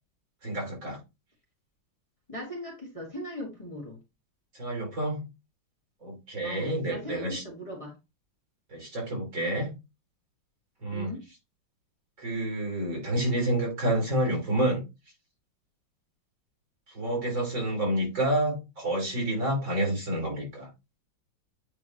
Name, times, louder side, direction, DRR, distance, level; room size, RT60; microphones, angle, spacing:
voice 1, 0.4-1.0 4.5-5.2 6.0-7.4 8.7-9.7 10.8-11.1 12.2-14.8 16.9-20.7, right 1 dB, 70° right, -1 dB, 5.3 m, -29 dB
voice 2, 2.3-4.0 6.4-7.9 10.9-11.2, equal, 15° left, -3 dB, 1.9 m, -39 dB
9.1 x 3.6 x 2.9 m, 0.24 s
omnidirectional pair, 2.2 m